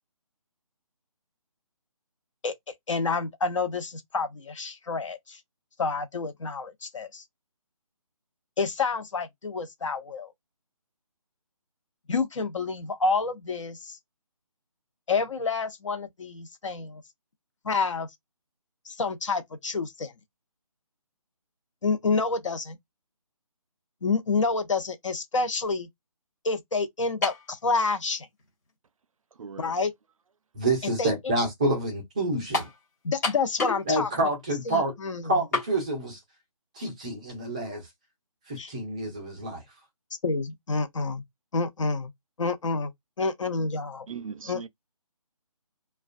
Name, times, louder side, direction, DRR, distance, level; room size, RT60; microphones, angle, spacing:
voice 1, 2.9-5.4 5.8-7.2 8.6-10.3 12.1-14.0 15.1-17.0 17.6-18.1 18.9-20.1 21.8-22.8 24.0-25.9 26.4-28.3 29.6-29.9 31.0-31.1 33.0-34.1 34.7-35.2 38.6-38.7 40.2-41.2 41.5-42.1 42.4-42.9 43.2-44.1 44.5-44.7, left 4 dB, 55° left, 0.7 m, -28 dB
sound 1, 27.2-27.5 28.4-28.5 32.5-32.8 33.2-33.9 34.2-34.3 35.5-35.7, left 3 dB, 25° left, 1.1 m, -29 dB
voice 2, 29.4-29.7 44.1-44.7, right 6 dB, 65° right, 0.4 m, -39 dB
voice 3, 30.5-32.7 33.9-34.9 35.2-36.2 36.8-37.9 38.5-39.6, right 2 dB, 10° right, 0.5 m, -28 dB
2.3 x 2.2 x 2.4 m
hypercardioid pair, 165°, 19 cm